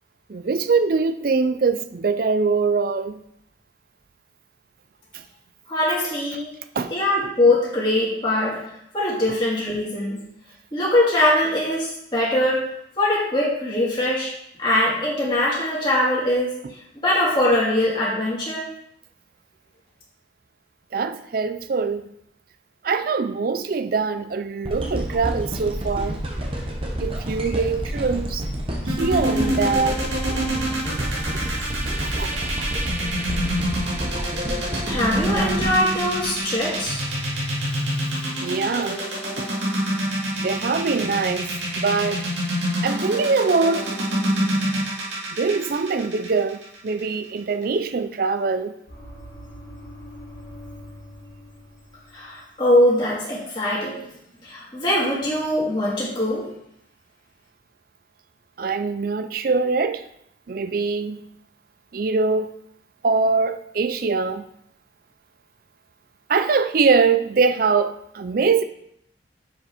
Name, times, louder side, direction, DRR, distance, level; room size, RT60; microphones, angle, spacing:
voice 1, 0.3-3.2 5.1-5.2 6.8-6.9 16.6-16.7 20.9-22.1 22.8-26.2 27.0-28.5 28.9-30.0 31.3-31.4 32.0-32.3 38.4-39.0 39.4-39.5 40.4-42.3 42.8-44.0 45.3-48.7 58.6-60.0 60.5-61.2 61.9-62.5 63.0-64.5 66.3-68.6, right 4 dB, 50° right, 0.4 m, -23 dB
voice 2, 5.7-6.5 6.9-8.6 8.9-10.2 10.7-12.6 13.0-14.3 14.6-16.5 17.0-18.6 34.9-37.0 52.1-54.0 54.4-56.4, left 1 dB, 25° left, 2.3 m, -22 dB
sound 1, 24.6-36.8 37.4-37.5, equal, 30° right, 1.0 m, -29 dB
sound 2, 28.9-47.0, right 1 dB, 70° right, 2.5 m, -26 dB
sound 3, 48.9-52.4 52.6-53.0, equal, 65° left, 2.4 m, -42 dB
6.8 x 5.0 x 4.9 m
head